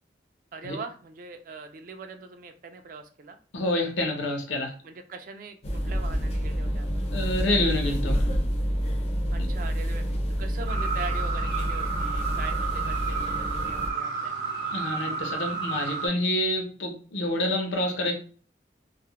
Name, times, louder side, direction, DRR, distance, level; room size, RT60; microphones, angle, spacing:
voice 1, 0.5-3.4 4.8-7.1 9.3-14.4, right 4 dB, 50° right, 7 dB, 0.3 m, -42 dB
voice 2, 3.5-4.7 7.1-8.2 9.4-9.5 14.7-18.1, left 1 dB, 85° left, 3 dB, 0.7 m, -27 dB
sound 1, 5.6-13.9, equal, 35° left, 0.4 m, -28 dB
sound 2, 10.7-16.1, right 5 dB, 70° right, 0.7 m, -31 dB
2.3 x 2.0 x 2.8 m, 0.42 s
head